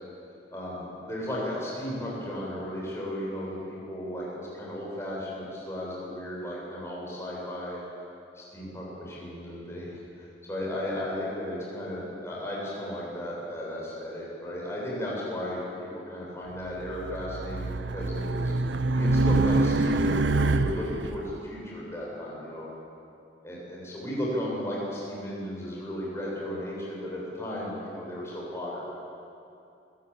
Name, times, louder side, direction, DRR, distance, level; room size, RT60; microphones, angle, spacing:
voice 1, 0.5-4.3 4.5-7.8 8.4-18.5 18.9-22.7 23.4-28.9, left 1 dB, 15° left, -5 dB, 7.2 m, -35 dB
Race car auto racing, 16.8-21.2, right 2 dB, 90° right, 0.8 m, -25 dB
27.5 x 17.0 x 8.6 m, 2.6 s
head